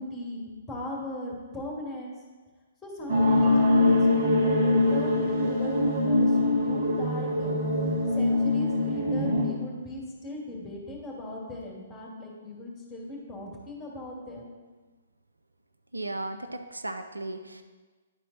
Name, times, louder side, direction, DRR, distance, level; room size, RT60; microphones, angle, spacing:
voice 1, 0.0-2.2 2.8-7.6 8.1-14.5, left 1 dB, 15° left, -2 dB, 2.1 m, -38 dB
sound 1, 3.1-9.5, left 2 dB, 50° right, 1.9 m, -23 dB
Marimba xylophone, 3.4-5.5, right 3 dB, 25° right, 1.7 m, -33 dB
voice 2, 15.9-17.6, right 2 dB, 85° right, 7 dB, 0.6 m, -35 dB
10.5 x 4.2 x 4.1 m, 1.3 s
figure-of-eight pair, 125°, 0 cm